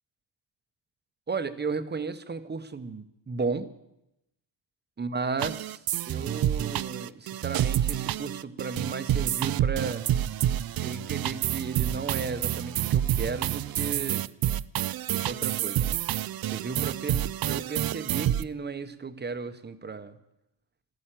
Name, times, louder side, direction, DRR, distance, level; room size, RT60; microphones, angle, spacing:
voice 1, 1.3-3.7 5.0-5.8 6.1-10.1 10.8-14.3 15.1-16.0 16.5-20.2, right 4 dB, 20° right, 11 dB, 0.8 m, -34 dB
sound 1, 5.4-18.4, right 12 dB, 50° right, 0.5 m, -28 dB
13.5 x 11.5 x 9.0 m, 0.87 s
cardioid pair, 155°, 50 cm